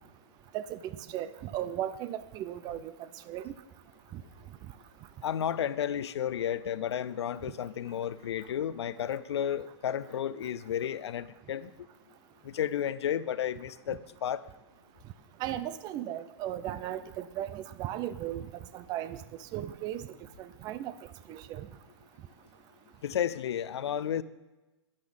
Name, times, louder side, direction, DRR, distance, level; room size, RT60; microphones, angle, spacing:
voice 1, 0.5-2.9 3.3-3.5 4.1-4.2 15.4-18.5 18.7-19.2 19.5-20.1 20.4-20.9 21.3-21.7, right 12 dB, 25° right, 16 dB, 0.5 m, -36 dB
voice 2, 5.2-11.7 12.4-14.4 23.0-24.2, left 9 dB, 65° left, 16 dB, 0.6 m, -32 dB
12.0 x 10.0 x 5.4 m, 1.1 s
hypercardioid pair, 120°, 15 cm